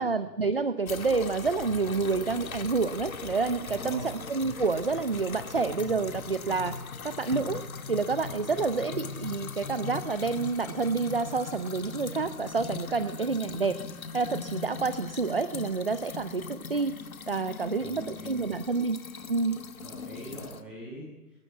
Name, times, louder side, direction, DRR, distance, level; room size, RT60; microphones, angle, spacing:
voice 1, 0.0-6.8 7.0-7.6 7.9-13.8 14.1-17.0 17.3-19.0 19.3-19.6, right 4 dB, 35° right, 13 dB, 0.7 m, -28 dB
sound 1, 0.9-20.6, left 5 dB, 55° left, 2.0 m, -40 dB
voice 2, 3.7-4.1 8.4-8.9 17.7-18.4 19.8-21.1, right 1 dB, ahead, -7 dB, 7.3 m, -43 dB
22.5 x 20.0 x 8.3 m, 0.98 s
hypercardioid pair, 170°, 49 cm